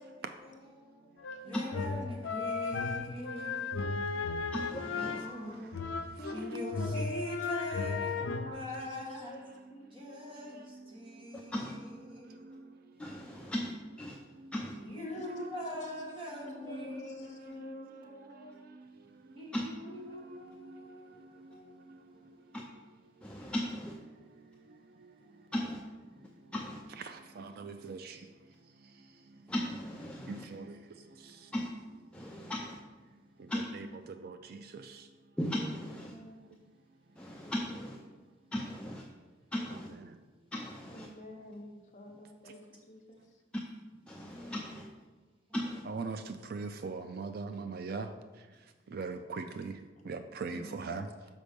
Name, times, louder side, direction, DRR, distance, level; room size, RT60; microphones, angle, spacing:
voice 1, 0.0-1.8 6.2-7.7 8.1-9.4 9.7-10.3 15.0-15.3 15.6-18.7 20.1-21.1 21.5-22.4 35.8-36.4 40.9-43.2 50.5-51.0, left 2 dB, 40° left, 1.0 m, -47 dB
voice 2, 0.8-1.3 3.3-4.2 5.2-5.7 6.1-6.3 8.4-8.6 9.6-11.5 12.1-13.5 14.1-14.5 15.2-15.7 16.7-19.4 20.1-22.6 23.2-23.5 24.1-25.5 26.1-26.5 27.0-29.5 30.1-31.5 32.2-32.5 33.1-35.1 36.1-36.6 38.1-38.2 40.1-40.2 42.4-42.5 45.9-51.1, right 4 dB, 50° right, 0.4 m, -45 dB
sound 1, 1.2-6.4 6.7-8.5, left 4 dB, 80° left, 0.4 m, -35 dB
voice 3, 1.4-3.9 4.9-6.0 6.3-9.4 9.9-12.8 14.8-17.1 18.2-18.3 19.3-22.2, equal, 25° right, 1.4 m, -43 dB
voice 4, 4.5-5.2 11.3-11.8 13.0-13.7 14.0-14.2 14.5-14.8 19.5-19.6 22.5-22.6 23.2-24.0 25.5-25.8 26.5-26.8 29.5-30.5 31.5-31.7 32.1-32.8 33.5-33.7 35.4-36.1 37.2-38.0 38.5-39.0 39.5-39.9 40.5-41.1 44.1-44.9 45.5-45.8, left 1 dB, 5° left, 0.4 m, -37 dB
6.5 x 5.2 x 5.2 m
head